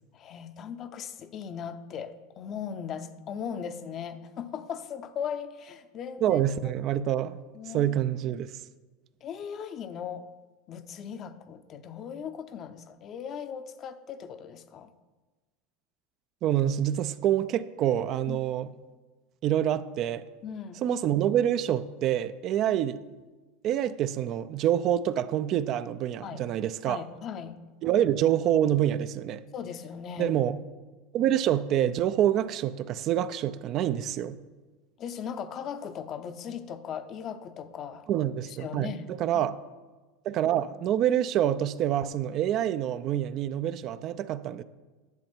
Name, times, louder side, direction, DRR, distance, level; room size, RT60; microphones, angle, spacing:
voice 1, 0.1-6.7 7.5-7.9 9.2-10.3 10.7-14.9 18.3-18.4 20.4-20.8 22.7-22.8 26.2-26.4 26.8-27.6 29.5-30.3 35.0-38.1 38.5-39.4, left 7 dB, 40° left, 0.7 m, -38 dB
voice 2, 6.2-7.4 7.7-8.5 16.4-18.7 19.4-20.2 20.8-23.0 23.6-27.0 27.8-29.4 30.2-30.6 31.1-34.4 38.1-39.6 40.2-44.6, right 11 dB, 50° right, 0.4 m, -26 dB
10.5 x 7.1 x 4.5 m
hypercardioid pair, 105°, 0 cm